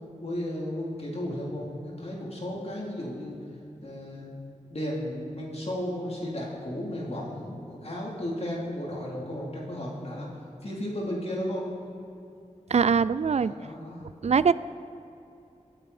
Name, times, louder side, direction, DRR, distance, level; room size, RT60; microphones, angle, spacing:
voice 1, 0.2-3.4 3.8-4.3 4.7-10.3 10.6-11.7 13.4-14.0, left 1 dB, 50° left, -4 dB, 3.5 m, -34 dB
voice 2, 12.7-13.5 14.2-14.5, right 6 dB, 55° right, 17 dB, 0.4 m, -22 dB
22.5 x 8.9 x 4.4 m, 2.7 s
wide cardioid pair, 75°, 13 cm